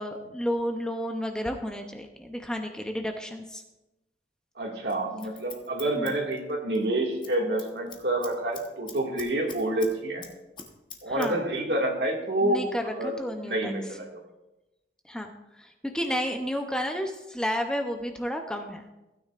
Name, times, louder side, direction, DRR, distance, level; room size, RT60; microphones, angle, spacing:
voice 1, 0.0-3.6 6.0-6.1 11.1-11.4 12.4-13.7 15.1-15.3 15.6-18.9, equal, 5° left, 4 dB, 0.6 m, -31 dB
voice 2, 4.6-10.2 11.0-13.1 13.4-14.1, right 1 dB, 75° right, 0 dB, 2.0 m, -28 dB
Scissors, 4.9-6.9 7.1-7.3 7.6-9.9 10.2-11.3 11.6-11.7, left 6 dB, 25° left, 1.1 m, -44 dB
16.0 x 9.5 x 2.5 m, 0.99 s
head